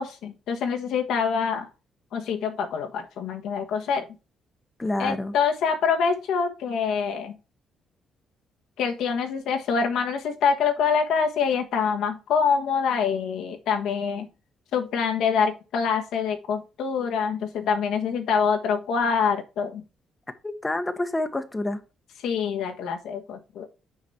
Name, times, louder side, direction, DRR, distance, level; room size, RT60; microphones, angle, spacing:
voice 1, 0.0-1.7 2.1-4.1 5.0-7.4 8.8-14.3 14.7-19.8 22.2-23.7, left 6 dB, 80° left, 1.3 m, -25 dB
voice 2, 4.8-5.3 20.4-21.8, left 2 dB, 15° left, 0.9 m, -28 dB
6.1 x 5.0 x 5.6 m
cardioid pair, 90°, 0 cm